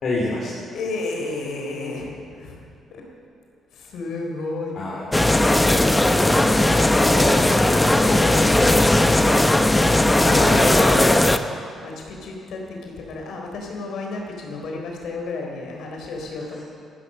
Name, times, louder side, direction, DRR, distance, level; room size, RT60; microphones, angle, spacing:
voice 1, 0.0-0.5 4.7-5.1 6.5-9.2 10.2-11.2 16.5-16.6, left 2 dB, 55° left, -5 dB, 3.0 m, -28 dB
voice 2, 0.7-2.6 2.9-3.1 3.7-4.8 10.0-10.5 11.8-16.6, left 3 dB, 75° left, 0 dB, 3.8 m, -32 dB
sound 1, 5.1-11.4, left 1 dB, 10° left, 0.8 m, -17 dB
14.5 x 12.5 x 6.7 m, 2.5 s
cardioid pair, 90°, 0 cm